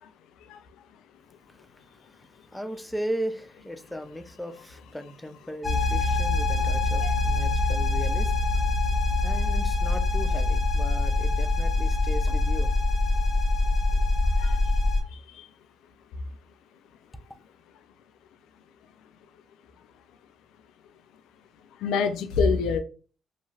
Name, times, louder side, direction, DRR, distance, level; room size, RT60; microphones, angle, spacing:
voice 1, 2.2-8.3 9.2-12.7, equal, 5° left, 0.3 m, -36 dB
sound 1, 5.6-15.0, left 2 dB, 25° left, 0.8 m, -24 dB
voice 2, 15.1-15.5 21.8-22.8, left 5 dB, 90° left, 0.3 m, -26 dB
2.4 x 2.3 x 3.1 m
cardioid pair, 90°, 0 cm